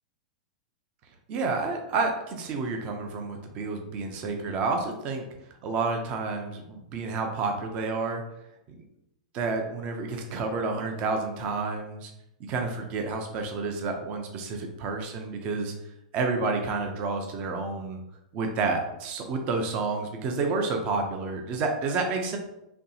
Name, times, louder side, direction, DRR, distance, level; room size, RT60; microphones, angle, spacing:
voice 1, 1.3-5.3 5.6-8.2 9.3-12.1 12.4-15.7 16.1-18.0 18.3-22.4, right 3 dB, 30° right, 4 dB, 0.5 m, -30 dB
4.3 x 3.1 x 2.8 m, 0.86 s
supercardioid pair, 155°, 4 cm